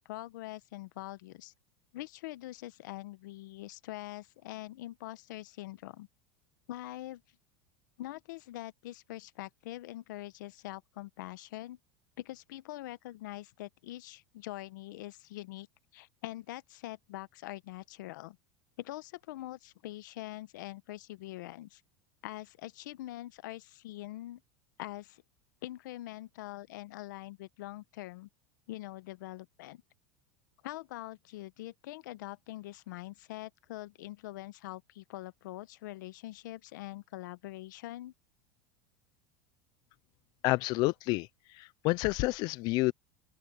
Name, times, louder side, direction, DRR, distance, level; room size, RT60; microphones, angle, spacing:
voice 1, 0.0-1.5 1.9-6.1 6.7-7.2 8.0-11.8 12.2-15.7 15.9-18.4 18.8-21.8 22.2-24.4 24.8-25.2 25.6-28.3 28.7-29.8 30.6-38.1, left 16 dB, 80° left, 1.1 m, -44 dB
voice 2, 40.4-41.3 41.6-42.9, left 22 dB, 45° left, 0.4 m, -29 dB
open air
supercardioid pair, 155°, 10 cm